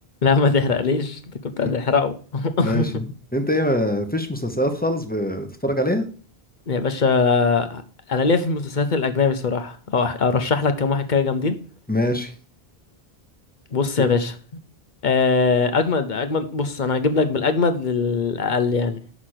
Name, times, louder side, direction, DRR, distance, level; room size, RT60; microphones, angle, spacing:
voice 1, 0.2-2.9 6.7-7.8 8.1-11.5 13.7-14.3 15.0-19.1, left 4 dB, 50° left, 0.9 m, -21 dB
voice 2, 2.6-6.0 11.9-12.3 14.0-14.1, left 1 dB, 10° left, 0.9 m, -24 dB
6.1 x 5.8 x 6.5 m
omnidirectional pair, 1.1 m